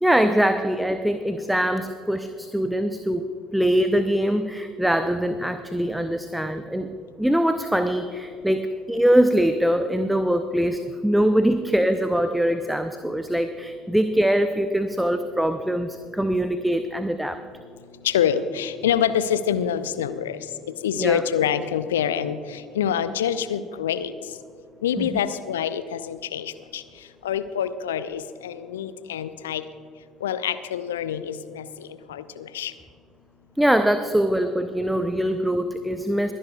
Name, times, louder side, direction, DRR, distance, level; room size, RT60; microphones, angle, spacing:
voice 1, 0.0-3.3 3.5-17.4 21.0-21.2 25.0-25.2 33.6-36.3, equal, 5° right, 9 dB, 0.5 m, -23 dB
voice 2, 18.0-20.4 20.8-24.1 24.8-26.8 27.2-29.6 30.2-32.7, left 9 dB, 70° left, 13 dB, 0.5 m, -26 dB
24.0 x 11.0 x 2.3 m, 2.4 s
figure-of-eight pair, 55°, 0 cm